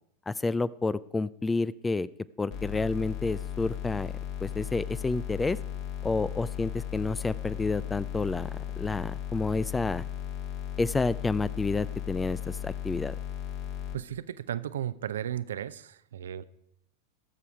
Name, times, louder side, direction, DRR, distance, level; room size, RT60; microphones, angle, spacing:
voice 1, 0.3-2.1 2.4-4.1 4.4-5.6 6.0-10.0 10.8-13.1, left 3 dB, 10° left, 20 dB, 0.3 m, -29 dB
sound 1, 2.5-13.9, left 10 dB, 45° left, 1.6 m, -36 dB
voice 2, 13.9-16.4, right 10 dB, 65° right, 15 dB, 0.5 m, -35 dB
18.0 x 7.0 x 4.6 m, 0.74 s
figure-of-eight pair, 90°, 0 cm